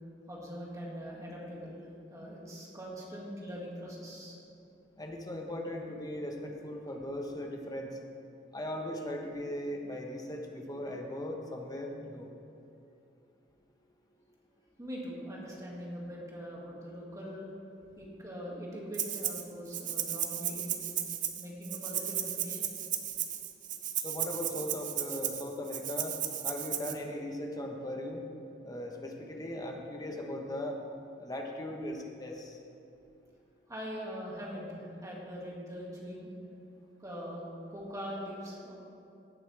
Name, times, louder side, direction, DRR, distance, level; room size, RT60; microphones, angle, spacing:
voice 1, 0.3-1.8 2.1-4.4 14.8-17.5 18.0-20.8 21.4-22.7 33.7-36.3 37.0-37.4 37.7-38.7, equal, 20° right, -4 dB, 2.2 m, -42 dB
voice 2, 5.0-7.9 8.5-12.3 24.0-26.2 26.4-28.2 28.6-30.8 31.2-32.6, left 1 dB, 20° left, 1 dB, 1.1 m, -38 dB
Rattle (instrument), 18.9-19.4 19.7-26.9, right 10 dB, 45° right, 0.7 m, -35 dB
16.5 x 8.6 x 3.5 m, 2.7 s
head